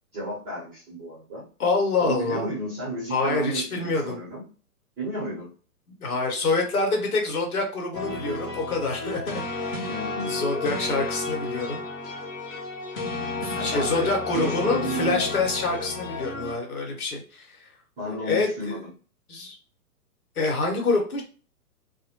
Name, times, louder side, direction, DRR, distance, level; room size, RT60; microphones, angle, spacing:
voice 1, 0.1-1.5 2.0-4.4 5.0-5.5 9.8-10.6 13.6-15.2 18.0-18.9, right 2 dB, 20° right, -7 dB, 0.8 m, -32 dB
voice 2, 1.6-2.5 3.1-4.2 6.0-9.9 10.2-11.8 13.4-17.7 18.0-18.8 19.3-19.6 20.4-21.2, left 3 dB, 65° left, 1 dB, 1.1 m, -26 dB
sound 1, 7.9-16.5, left 3 dB, 20° left, 0.6 m, -32 dB
2.1 x 2.1 x 2.9 m, 0.38 s
figure-of-eight pair, 125°, 47 cm